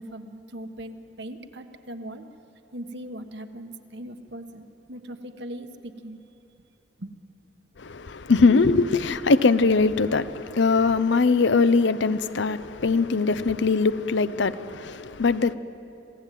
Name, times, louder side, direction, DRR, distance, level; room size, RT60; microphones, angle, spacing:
voice 1, 0.0-2.2 2.7-6.2 7.0-7.1, right 1 dB, 65° right, 1.3 m, -39 dB
voice 2, 7.8-15.5, left 4 dB, 75° left, 0.7 m, -21 dB
26.5 x 17.5 x 9.2 m
head